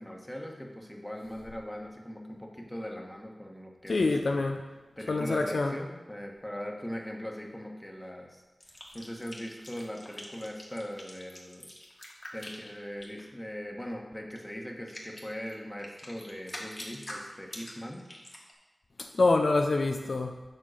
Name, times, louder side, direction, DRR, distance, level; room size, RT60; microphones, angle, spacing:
voice 1, 0.0-4.5 5.0-8.4 8.9-11.7 12.3-18.0, equal, 15° left, 0 dB, 1.2 m, -40 dB
voice 2, 3.9-4.6 5.1-5.7 19.1-20.4, left 3 dB, 80° left, 3 dB, 0.4 m, -26 dB
sound 1, 8.6-13.2 14.3-14.4 14.9-18.5, left 1 dB, 35° left, 1.6 m, -44 dB
7.4 x 3.7 x 6.3 m, 1.2 s
wide cardioid pair, 55°, 0 cm